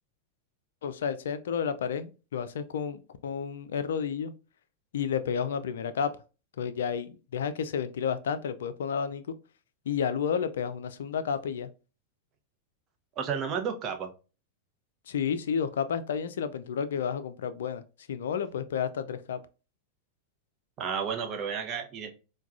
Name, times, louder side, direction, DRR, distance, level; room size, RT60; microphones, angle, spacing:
voice 1, 0.8-4.3 4.9-6.1 6.6-9.2 9.9-11.7 15.1-17.8 18.1-19.4, left 7 dB, 60° left, 12 dB, 0.3 m, -31 dB
voice 2, 13.2-14.1 20.8-22.1, right 7 dB, 30° right, 4 dB, 0.7 m, -32 dB
4.6 x 2.2 x 2.4 m, 0.32 s
figure-of-eight pair, 90°, 0 cm